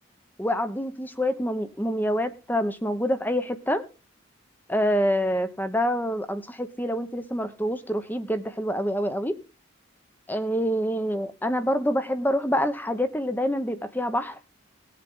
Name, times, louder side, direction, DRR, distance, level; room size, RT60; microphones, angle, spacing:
voice 1, 0.4-3.8 4.7-9.3 10.3-14.4, equal, 10° left, 1.1 m, -26 dB
18.5 x 7.5 x 3.8 m
head